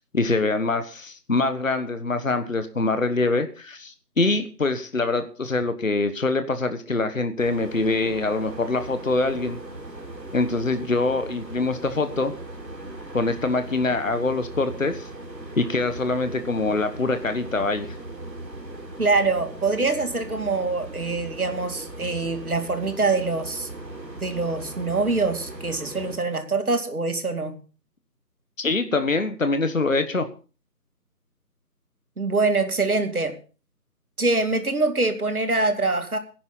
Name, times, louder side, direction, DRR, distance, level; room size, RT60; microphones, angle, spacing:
voice 1, 0.1-9.6 10.3-12.3 13.1-15.1 15.6-17.9 28.6-30.3, left 3 dB, 50° left, 9 dB, 1.5 m, -24 dB
sound 1, 7.4-26.2, right 2 dB, 85° right, 3.7 m, -38 dB
voice 2, 19.0-23.7 24.2-27.6 32.2-33.4 34.2-36.2, right 3 dB, 60° right, 7 dB, 2.5 m, -24 dB
17.5 x 11.0 x 4.0 m, 0.36 s
figure-of-eight pair, 170°, 50 cm